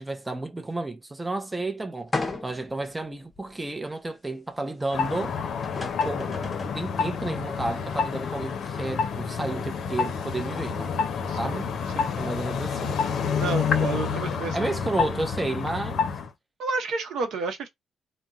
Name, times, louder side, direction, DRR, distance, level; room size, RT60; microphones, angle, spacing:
voice 1, 0.0-5.4 6.0-6.4 6.7-11.0 11.4-11.8 12.1-13.0 14.5-16.1, right 2 dB, 15° right, 0.5 m, -32 dB
sound 1, 2.1-2.7 3.4-3.5 5.3-5.4 5.6-6.8, left 3 dB, 25° left, 0.7 m, -33 dB
sound 2, 4.9-16.3, left 6 dB, 65° left, 0.5 m, -28 dB
voice 2, 11.3-11.6 11.9-12.1 13.4-14.6 16.6-17.7, right 4 dB, 75° right, 0.7 m, -30 dB
2.3 x 2.1 x 3.8 m
cardioid pair, 90°, 0 cm